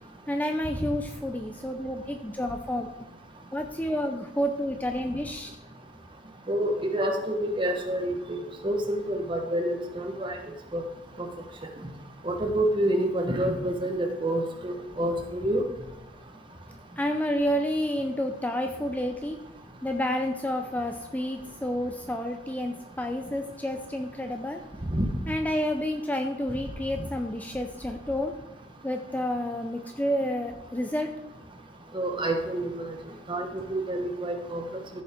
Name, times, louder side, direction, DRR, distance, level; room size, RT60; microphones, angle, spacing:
voice 1, 0.3-2.9 3.5-5.5 17.0-19.4 19.8-24.6 25.3-28.3 28.8-31.1, equal, 10° left, 4 dB, 0.5 m, -30 dB
voice 2, 6.5-10.4 10.7-10.8 12.2-15.6 24.9-25.1 31.9-32.9 33.3-34.6, right 1 dB, 25° right, 3 dB, 1.3 m, -28 dB
14.0 x 7.2 x 3.7 m, 1.0 s
head